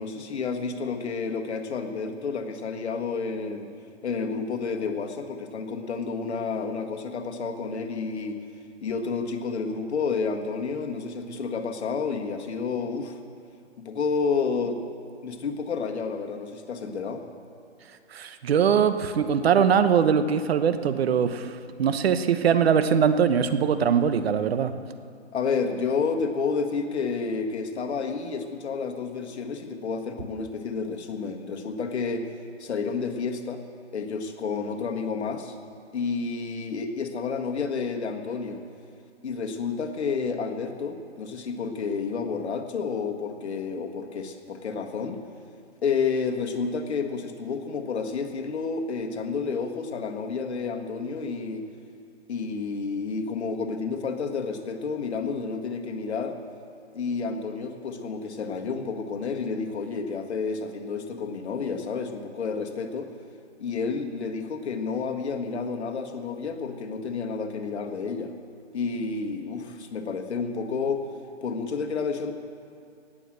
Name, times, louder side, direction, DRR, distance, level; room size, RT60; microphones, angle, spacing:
voice 1, 0.0-3.7 4.0-8.4 8.8-13.2 13.8-14.8 15.2-17.2 25.3-32.3 32.6-33.6 33.9-35.6 35.9-38.6 39.2-45.2 45.8-51.7 52.3-56.4 56.9-63.1 63.6-68.3 68.7-71.1 71.4-72.3, left 5 dB, 65° left, 4 dB, 1.8 m, -30 dB
voice 2, 18.1-24.7, right 7 dB, 60° right, 10 dB, 1.0 m, -22 dB
18.5 x 7.8 x 7.7 m, 2.4 s
hypercardioid pair, 145°, 35 cm